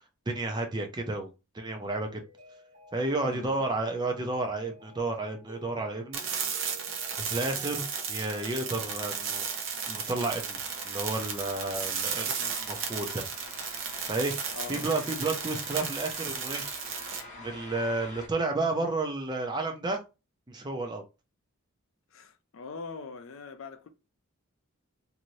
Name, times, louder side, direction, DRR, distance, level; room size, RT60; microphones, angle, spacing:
voice 1, 0.3-2.2 2.9-6.2 7.2-9.4 9.9-10.6 10.8-13.3 14.1-14.4 14.7-16.7 17.4-20.0 20.5-21.0, right 2 dB, 20° right, 0.5 m, -31 dB
Mallet percussion, 2.0-10.2, right 1 dB, 40° right, 1.0 m, -53 dB
voice 2, 3.2-3.7 14.5-14.9 22.1-23.9, left 4 dB, 65° left, 0.4 m, -42 dB
sound 1, 6.1-17.2, right 6 dB, 60° right, 0.6 m, -34 dB
sound 2, 8.2-18.3, left 2 dB, 35° left, 0.7 m, -48 dB
2.7 x 2.6 x 3.0 m
head